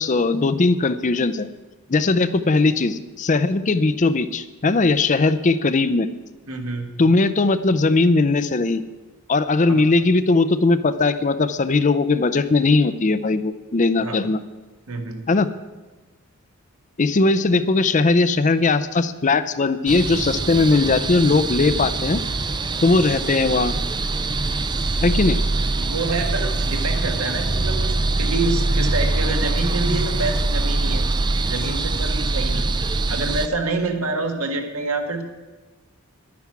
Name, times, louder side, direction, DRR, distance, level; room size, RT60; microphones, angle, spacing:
voice 1, 0.0-1.5 1.9-6.1 7.0-8.8 9.3-14.4 15.3-15.5 17.0-22.2 22.8-23.7 25.0-25.4, left 3 dB, 35° left, 13 dB, 0.5 m, -19 dB
voice 2, 6.5-6.9 9.7-9.8 14.0-14.2 14.9-15.3 25.8-31.0 31.4-32.7 33.1-35.2, right 3 dB, 75° right, 4 dB, 1.6 m, -27 dB
sound 1, 19.9-33.5, right 2 dB, 20° right, 0.4 m, -23 dB
11.0 x 9.4 x 6.0 m, 1.2 s
head